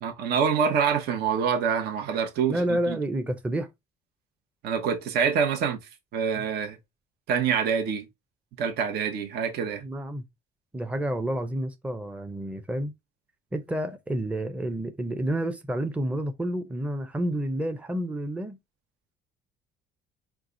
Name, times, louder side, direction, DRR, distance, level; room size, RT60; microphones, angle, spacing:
voice 1, 0.0-3.0 4.6-5.8 6.1-6.8 7.3-8.1 8.6-9.9, right 6 dB, 70° right, 1.1 m, -26 dB
voice 2, 2.5-3.7 9.8-10.2 10.7-12.9 13.5-18.6, right 1 dB, 10° right, 0.6 m, -29 dB
4.6 x 2.4 x 3.8 m
cardioid pair, 110°, 17 cm